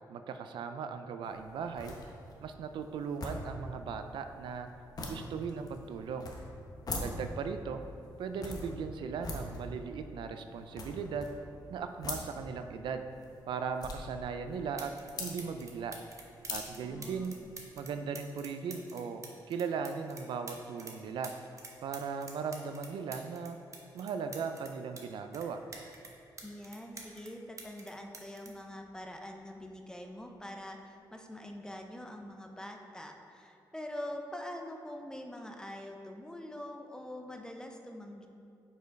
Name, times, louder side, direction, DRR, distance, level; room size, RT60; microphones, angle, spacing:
voice 1, 0.1-2.0 2.4-4.7 5.1-6.3 7.0-7.8 8.2-11.3 11.7-13.1 13.5-14.9 15.2-15.9 16.5-17.4 17.8-21.3 21.8-23.6 23.9-25.6, right 6 dB, 75° right, 8 dB, 0.3 m, -38 dB
sound 1, 1.2-17.7, left 1 dB, 50° left, 1.0 m, -44 dB
sound 2, 14.8-15.1 15.4-21.0 21.2-25.0 25.3-27.3 27.6-29.4 30.3-30.6, right 3 dB, 40° right, 0.9 m, -48 dB
voice 2, 16.8-17.3 26.4-38.3, left 1 dB, 10° left, 3 dB, 0.6 m, -44 dB
5.1 x 4.5 x 4.6 m, 2.5 s
cardioid pair, 85°, 8 cm